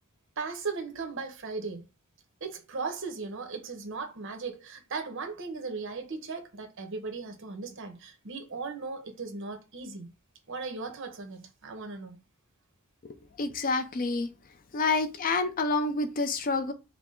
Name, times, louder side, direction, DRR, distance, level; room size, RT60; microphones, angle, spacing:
voice 1, 0.4-1.8 2.4-10.1 10.5-12.2, right 4 dB, 65° right, 1.0 m, -37 dB
voice 2, 13.4-14.3 14.7-16.7, left 3 dB, 40° left, 0.5 m, -28 dB
4.7 x 2.1 x 3.7 m
head